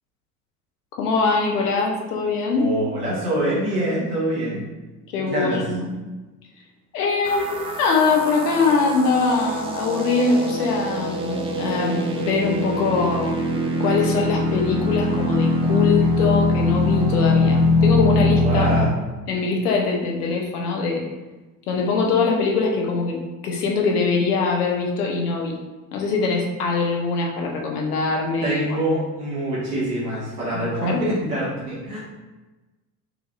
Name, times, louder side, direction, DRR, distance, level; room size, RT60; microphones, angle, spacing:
voice 1, 1.0-2.7 5.1-5.9 6.9-13.4 13.8-18.7 19.3-21.0 21.7-25.6 25.9-28.8 30.8-31.0, left 4 dB, 75° left, 0 dB, 0.8 m, -22 dB
voice 2, 2.5-4.6 5.3-5.6 18.2-18.9 28.4-32.0, right 1 dB, 85° right, -8 dB, 1.1 m, -25 dB
sound 1, 7.3-18.9, left 2 dB, 15° right, 0.4 m, -22 dB
4.5 x 2.7 x 2.4 m, 1.2 s
figure-of-eight pair, 65°, 46 cm